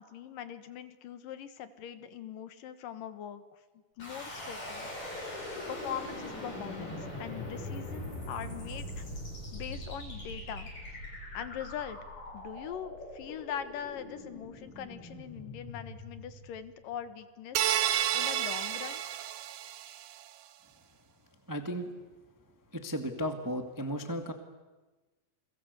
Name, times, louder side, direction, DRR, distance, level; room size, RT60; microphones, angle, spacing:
voice 1, 0.0-3.4 4.0-5.1 5.7-9.0 9.5-10.7 11.3-12.0 12.3-19.0, left 9 dB, 70° left, 11 dB, 3.0 m, -42 dB
sound 1, 4.0-16.9, left 1 dB, 50° left, 9.4 m, -42 dB
sound 2, 17.6-20.0, right 11 dB, 65° right, 2.2 m, -30 dB
voice 2, 21.5-21.9 22.7-24.3, equal, 15° right, 7 dB, 0.6 m, -34 dB
29.5 x 22.5 x 8.2 m, 1.2 s
omnidirectional pair, 4.2 m